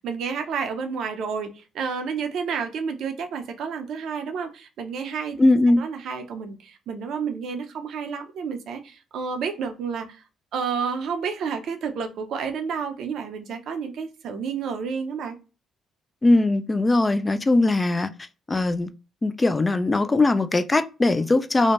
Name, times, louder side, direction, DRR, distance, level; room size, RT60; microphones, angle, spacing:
voice 1, 0.0-5.4 5.8-10.2 10.5-15.4, right 6 dB, 65° right, 0.5 m, -30 dB
voice 2, 5.4-5.8 16.2-18.1 18.5-18.9 19.2-21.7, left 2 dB, 25° left, 0.3 m, -20 dB
2.7 x 2.1 x 2.9 m
hypercardioid pair, 50°, 0 cm